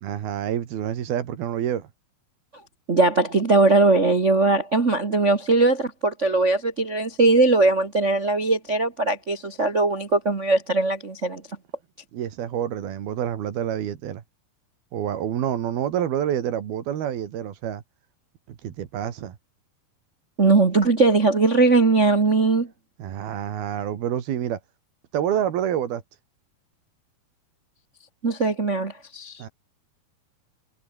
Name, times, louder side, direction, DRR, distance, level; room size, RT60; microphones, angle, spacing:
voice 1, 0.0-1.9 12.1-14.2 14.9-17.8 18.5-19.4 23.0-24.6 25.1-26.0 29.4-29.5, right 10 dB, 85° right, 4.1 m, -27 dB
voice 2, 2.9-11.4 20.4-22.7 28.2-29.4, right 3 dB, 50° right, 0.8 m, -20 dB
omnidirectional pair, 4.2 m